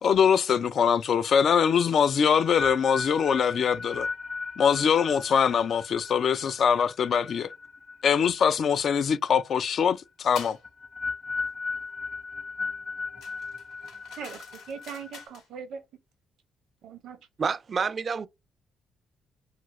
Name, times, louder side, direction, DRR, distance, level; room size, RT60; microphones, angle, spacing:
voice 1, 0.0-4.1 4.6-7.5 8.0-10.6, left 7 dB, 60° left, 0.3 m, -23 dB
sound 1, 1.7-8.7 9.0-9.4 10.6-15.2, left 4 dB, 35° left, 0.8 m, -37 dB
sound 2, 10.3-10.6 13.2-15.5, left 6 dB, 80° left, 0.9 m, -46 dB
voice 2, 14.2-15.8 16.8-17.2, right 6 dB, 80° right, 0.7 m, -40 dB
voice 3, 17.4-18.3, right 5 dB, 40° right, 0.3 m, -28 dB
2.7 x 2.5 x 3.0 m
cardioid pair, 90°, 0 cm